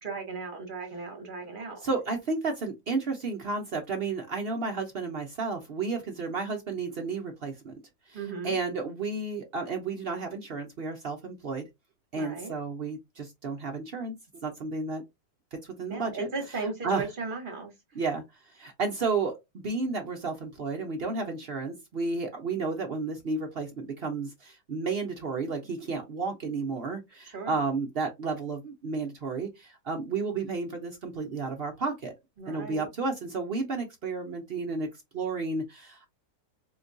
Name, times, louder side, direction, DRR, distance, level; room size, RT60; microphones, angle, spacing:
voice 1, 0.0-1.8 8.1-8.6 12.1-12.5 15.9-17.7 27.2-27.6 32.4-32.9, right 4 dB, 35° right, 1.1 m, -36 dB
voice 2, 1.8-7.7 8.1-8.2 8.4-11.6 12.1-14.1 14.4-15.0 15.8-16.3 16.8-17.0 18.0-18.2 18.5-19.4 19.6-32.1 32.5-34.9 35.1-36.1, right 4 dB, 60° right, 0.6 m, -32 dB
4.4 x 2.2 x 2.6 m
omnidirectional pair, 1.8 m